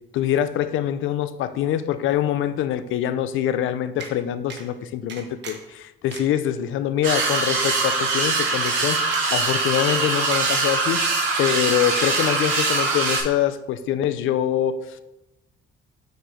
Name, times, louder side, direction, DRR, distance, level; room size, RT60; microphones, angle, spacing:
voice 1, 0.1-11.1 11.4-15.0, left 10 dB, 80° left, 12 dB, 0.5 m, -24 dB
sound 1, 4.0-4.1 4.5-4.6 5.1-5.7 6.1-6.2 6.7-6.8 7.2-7.3 7.9-8.0 8.6-8.8 9.1-9.4 9.7-10.0 10.3-10.9 11.3-11.7 12.0-12.1, right 5 dB, 65° right, 1.2 m, -37 dB
sound 2, 7.0-13.2, right 3 dB, 85° right, 2.3 m, -22 dB
6.5 x 4.7 x 5.0 m, 0.98 s
cardioid pair, 90°, 20 cm